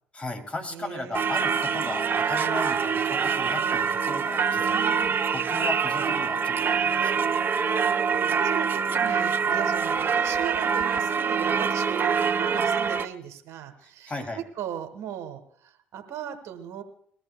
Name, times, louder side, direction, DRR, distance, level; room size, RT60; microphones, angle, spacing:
voice 1, 0.1-4.8 5.3-7.3 14.1-14.4, left 2 dB, 25° left, 4 dB, 2.9 m, -36 dB
voice 2, 0.7-1.5 4.6-5.2 7.6-14.1 14.6-16.8, right 9 dB, 70° right, 7 dB, 1.3 m, -38 dB
Singing / Church bell, 1.1-13.1, right 6 dB, 45° right, 0.6 m, -25 dB
20.5 x 13.5 x 2.3 m, 0.65 s
hypercardioid pair, 60°, 5 cm